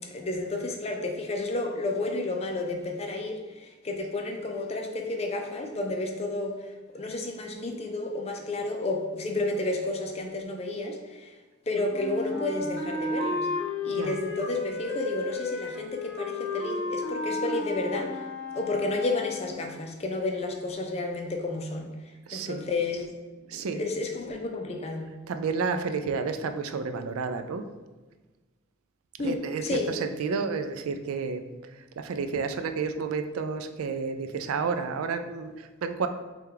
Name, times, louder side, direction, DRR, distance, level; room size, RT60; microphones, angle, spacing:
voice 1, 0.0-11.4 11.7-13.5 13.8-18.3 18.5-22.0 22.3-23.1 23.5-25.1 29.2-29.9, left 2 dB, 30° left, 3 dB, 0.4 m, -31 dB
Wind instrument woodwind instrument, 11.9-19.6, left 2 dB, 55° left, 0.8 m, -33 dB
voice 2, 13.9-14.2 18.9-19.0 22.3-22.6 23.5-23.9 25.3-27.6 29.2-36.1, right 5 dB, 90° right, 8 dB, 0.4 m, -31 dB
5.5 x 2.3 x 3.8 m, 1.2 s
head